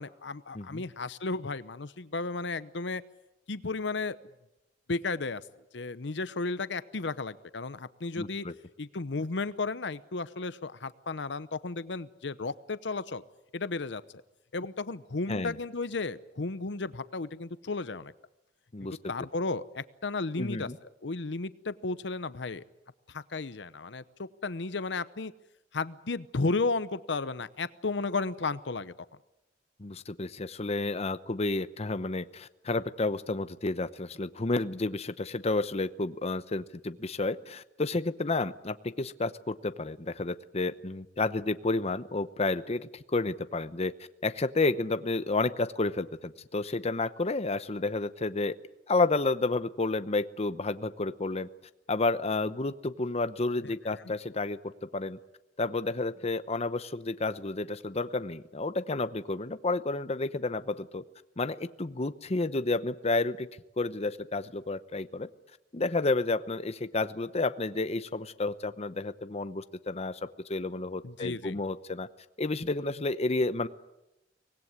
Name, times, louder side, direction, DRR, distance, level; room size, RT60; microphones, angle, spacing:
voice 1, 0.0-3.0 3.5-4.2 4.9-5.4 5.7-8.5 8.8-13.2 13.5-14.2 14.5-18.1 18.8-20.7 21.0-22.6 23.1-25.3 25.7-28.9 53.6-54.0 71.0-71.6, left 3 dB, 70° left, 15 dB, 0.8 m, -34 dB
voice 2, 8.2-8.5 15.3-15.6 18.7-19.0 20.4-20.8 29.8-43.9 44.2-48.5 48.9-51.5 51.9-55.2 55.6-61.0 61.4-63.5 63.8-65.3 65.7-72.1 72.4-73.7, left 3 dB, 35° left, 12 dB, 0.8 m, -31 dB
24.5 x 19.5 x 9.6 m, 0.93 s
head